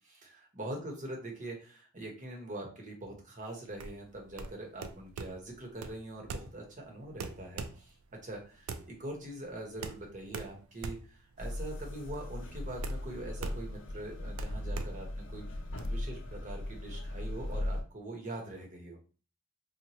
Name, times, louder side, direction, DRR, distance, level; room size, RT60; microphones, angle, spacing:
voice 1, 0.0-7.9 8.2-19.0, right 1 dB, 40° right, 0 dB, 1.0 m, -43 dB
sound 1, 3.7-15.9, right 4 dB, 85° right, 0.4 m, -44 dB
sound 2, 11.4-17.8, left 1 dB, 60° left, 0.6 m, -38 dB
4.2 x 2.1 x 3.0 m, 0.36 s
head